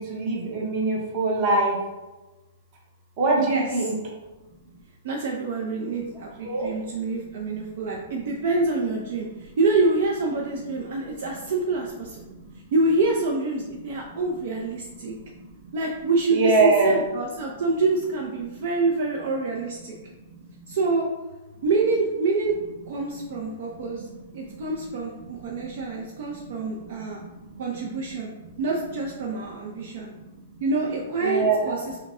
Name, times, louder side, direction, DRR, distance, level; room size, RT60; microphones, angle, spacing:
voice 1, 0.0-1.8 3.2-3.9 6.4-6.7 16.3-16.9 31.2-31.7, right 3 dB, 25° right, -2 dB, 0.8 m, -22 dB
voice 2, 3.4-3.9 5.0-12.3 12.7-15.1 15.7-20.0 20.7-21.1 21.6-22.6 22.9-24.1 24.3-27.2 27.6-28.3 28.6-30.1 30.6-32.0, right 3 dB, 45° right, -2 dB, 0.5 m, -26 dB
5.7 x 2.1 x 3.7 m, 1.1 s
hypercardioid pair, 180°, 0 cm